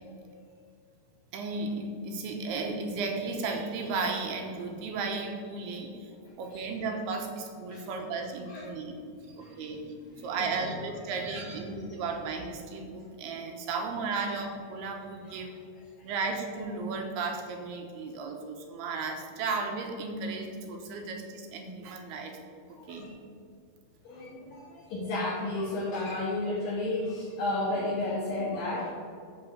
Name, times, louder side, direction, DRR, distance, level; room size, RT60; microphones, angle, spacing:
voice 1, 1.3-6.1 6.4-8.9 9.4-9.8 10.2-15.5 16.0-22.4 22.9-23.1, right 4 dB, 80° right, 3 dB, 3.1 m, -34 dB
voice 2, 9.2-10.7 11.1-11.8 14.1-14.3 15.3-15.4 15.7-15.8 22.8-23.1 24.0-28.9, left 2 dB, 65° left, -6 dB, 3.2 m, -34 dB
10.5 x 5.1 x 7.2 m, 2.3 s
omnidirectional pair, 4.6 m